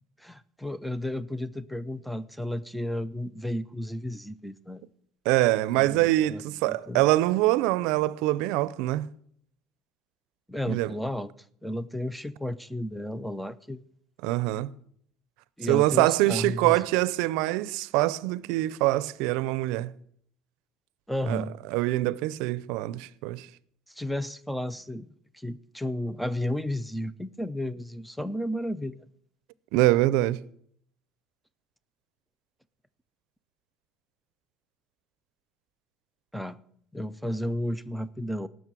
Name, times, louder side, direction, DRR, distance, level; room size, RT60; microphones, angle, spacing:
voice 1, 0.2-4.8 5.7-7.1 10.5-11.3 11.6-13.8 15.6-16.9 21.1-21.5 23.9-25.1 25.3-29.0 36.3-36.6 36.9-38.5, left 1 dB, ahead, 0.4 m, -33 dB
voice 2, 5.3-9.1 10.7-10.9 14.2-14.7 15.7-19.9 21.3-21.4 21.7-23.5 29.7-30.4, right 17 dB, 80° right, 0.5 m, -24 dB
17.5 x 6.4 x 6.1 m
cardioid pair, 165°, 0 cm